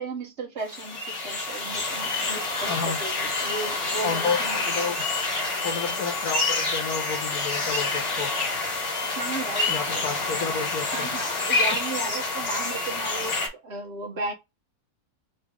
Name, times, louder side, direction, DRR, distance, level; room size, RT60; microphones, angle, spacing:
voice 1, 0.0-5.0 9.0-10.1 10.9-14.3, right 3 dB, 50° right, 1.1 m, -35 dB
sound 1, 0.7-13.5, left 3 dB, 50° left, 1.5 m, -28 dB
voice 2, 2.7-3.0 4.0-4.4 4.7-5.1 5.6-8.3 9.7-11.1, left 5 dB, 75° left, 1.2 m, -31 dB
4.0 x 2.4 x 3.5 m
omnidirectional pair, 1.6 m